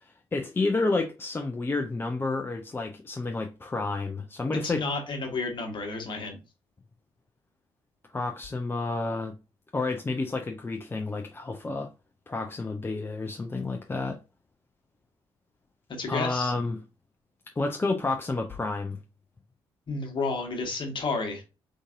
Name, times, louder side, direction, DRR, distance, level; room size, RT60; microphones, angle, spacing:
voice 1, 0.0-4.8 8.1-9.3 9.7-11.9 12.3-14.2 16.1-16.8 17.6-19.0, left 3 dB, 15° left, 0.5 m, -30 dB
voice 2, 4.6-6.4 15.9-16.5 19.9-21.4, left 3 dB, 35° left, 1.4 m, -31 dB
3.9 x 3.7 x 2.6 m
figure-of-eight pair, 45°, 13 cm